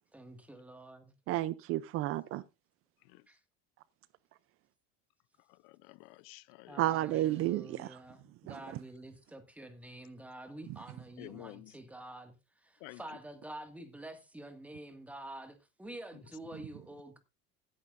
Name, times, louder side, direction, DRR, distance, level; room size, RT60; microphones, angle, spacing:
voice 1, 0.1-1.1 3.3-3.4 6.7-17.2, right 1 dB, 5° right, 1.8 m, -48 dB
voice 2, 1.3-2.4 6.8-8.0 8.5-8.6, right 15 dB, 50° right, 0.5 m, -31 dB
voice 3, 5.5-6.8 11.2-11.8 12.8-13.0, left 21 dB, 75° left, 0.6 m, -50 dB
17.0 x 9.6 x 2.5 m
supercardioid pair, 130°, 30 cm